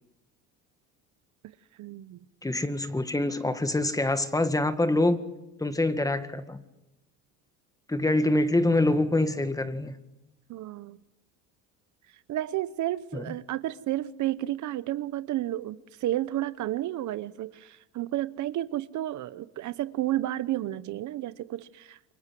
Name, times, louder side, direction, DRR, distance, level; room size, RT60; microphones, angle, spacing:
voice 1, 1.8-2.2 10.5-11.0 12.3-17.7 17.9-22.1, right 14 dB, 55° right, 1.0 m, -31 dB
voice 2, 2.4-5.2 5.6-6.6 7.9-10.0 13.1-13.4, left 2 dB, 10° left, 1.9 m, -25 dB
28.5 x 24.0 x 7.7 m
cardioid pair, 105°, 34 cm